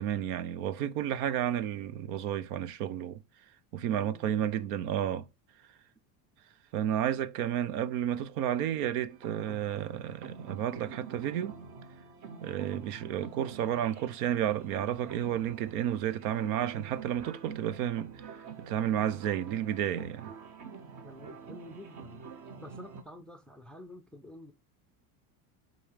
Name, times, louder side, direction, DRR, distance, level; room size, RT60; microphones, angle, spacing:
voice 1, 0.0-3.2 3.7-5.3 6.7-11.6 12.4-18.3 18.6-20.3, right 10 dB, 75° right, 0.8 m, -31 dB
voice 2, 3.9-4.7 21.0-22.2 22.6-24.5, left 1 dB, ahead, 0.4 m, -49 dB
sound 1, 9.1-23.0, right 6 dB, 40° right, 1.1 m, -47 dB
5.4 x 3.8 x 5.0 m
supercardioid pair, 120°, 48 cm